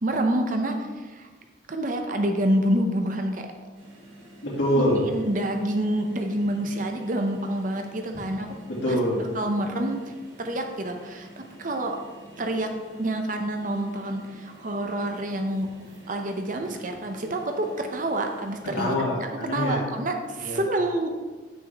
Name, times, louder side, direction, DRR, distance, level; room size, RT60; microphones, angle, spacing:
voice 1, 0.0-1.3 1.7-3.4 5.1-8.5 8.9-10.0 10.4-12.0 12.4-12.7 13.0-15.7 16.1-19.0 19.4-21.1, right 1 dB, 45° right, 4 dB, 0.7 m, -27 dB
sound 1, 3.7-18.6, right 1 dB, 85° right, 2.2 m, -49 dB
voice 2, 4.4-5.0 8.7-9.2 18.6-19.8 20.4-20.6, equal, 80° left, -5 dB, 2.5 m, -25 dB
7.4 x 6.3 x 3.5 m, 1.3 s
head